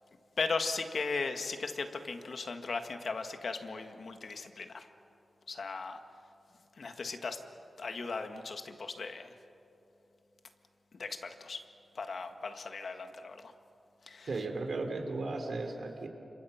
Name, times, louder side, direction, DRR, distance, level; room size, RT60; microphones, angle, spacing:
voice 1, 0.4-4.9 5.5-6.0 6.8-7.4 7.8-9.3 11.0-11.6 11.9-13.5 14.1-14.3, left 4 dB, 65° left, 7 dB, 1.6 m, -37 dB
voice 2, 14.3-16.1, right 3 dB, 65° right, 5 dB, 3.2 m, -35 dB
30.0 x 26.5 x 5.8 m, 3.0 s
wide cardioid pair, 115°, 0 cm